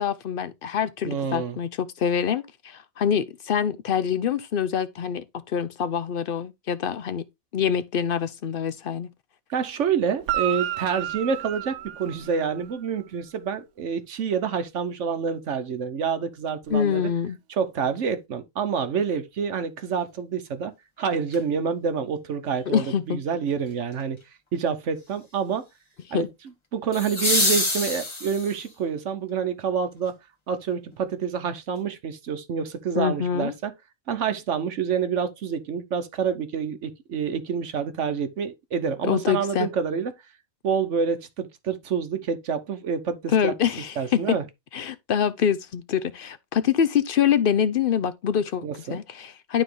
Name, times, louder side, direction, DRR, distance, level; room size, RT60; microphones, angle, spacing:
voice 1, 0.0-7.2 7.5-9.1 16.7-17.4 22.7-23.2 26.1-26.3 32.9-33.5 39.1-39.7 43.3-44.4 44.7-49.6, left 8 dB, 60° left, 0.6 m, -25 dB
voice 2, 1.0-1.6 9.5-17.1 17.5-20.7 21.0-24.2 24.5-25.7 26.1-26.3 26.7-30.1 30.5-33.7 34.1-40.1 40.6-43.5 44.0-44.4 48.6-49.0, right 6 dB, 60° right, 1.1 m, -27 dB
Guitar, 10.2-12.8 16.6-16.7, right 13 dB, 85° right, 1.1 m, -31 dB
sound 1, 21.3-21.4 26.9-28.7 30.9-31.0, left 2 dB, 20° left, 1.2 m, -25 dB
11.5 x 3.8 x 3.2 m
omnidirectional pair, 1.4 m